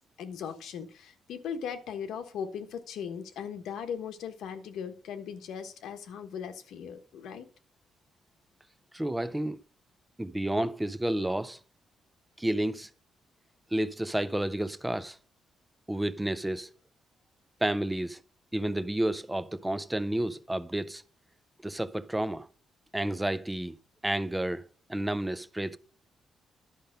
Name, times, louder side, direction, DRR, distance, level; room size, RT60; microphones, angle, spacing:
voice 1, 0.2-7.5, left 7 dB, 90° left, 1.2 m, -38 dB
voice 2, 8.9-9.6 10.2-11.6 12.4-12.9 13.7-15.2 15.9-16.7 17.6-18.2 18.5-21.0 21.6-22.5 22.9-23.8 24.0-25.8, right 1 dB, 5° right, 0.4 m, -30 dB
11.5 x 5.5 x 5.1 m
cardioid pair, 145°, 0 cm